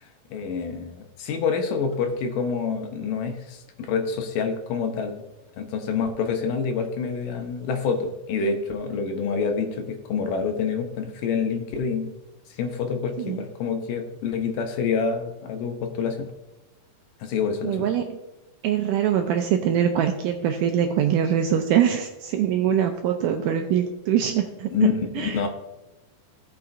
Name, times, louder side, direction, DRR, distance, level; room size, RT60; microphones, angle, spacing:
voice 1, 0.0-5.2 5.6-12.1 12.6-16.3 17.2-17.9 24.7-25.5, left 5 dB, 75° left, 5 dB, 2.2 m, -27 dB
voice 2, 17.6-18.2 18.6-24.7 25.2-25.4, right 9 dB, 85° right, 5 dB, 1.9 m, -23 dB
17.0 x 5.7 x 2.6 m, 1.0 s
omnidirectional pair, 4.2 m